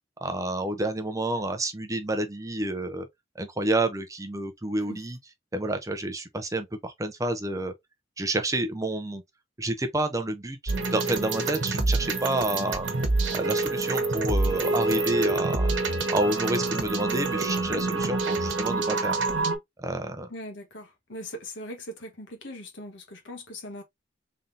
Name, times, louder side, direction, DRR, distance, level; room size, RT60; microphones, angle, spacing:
voice 1, 0.2-3.1 3.4-5.2 5.5-7.7 8.2-9.2 9.6-12.9 13.3-15.7 16.1-19.2 19.8-20.3, right 1 dB, 15° right, 0.6 m, -29 dB
sound 1, 10.7-19.6, right 3 dB, 70° right, 1.2 m, -27 dB
voice 2, 20.3-23.8, left 1 dB, 70° left, 1.4 m, -40 dB
3.9 x 3.6 x 2.7 m
head